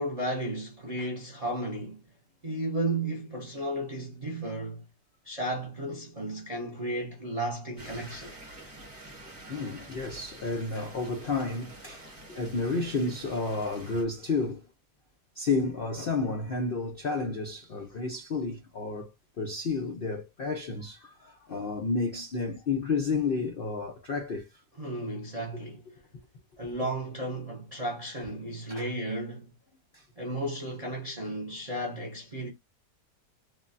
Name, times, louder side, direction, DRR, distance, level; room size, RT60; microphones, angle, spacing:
voice 1, 0.0-2.0 2.4-4.8 5.2-8.4 24.8-25.8 26.6-29.5 30.2-32.5, right 1 dB, 50° right, 0.4 m, -34 dB
sound 1, 7.8-14.0, right 1 dB, 25° right, 0.8 m, -48 dB
voice 2, 9.3-14.6 15.4-19.1 19.4-24.5 28.7-28.9 29.9-30.0, left 3 dB, 80° left, 0.5 m, -31 dB
3.3 x 2.2 x 2.5 m
omnidirectional pair, 1.8 m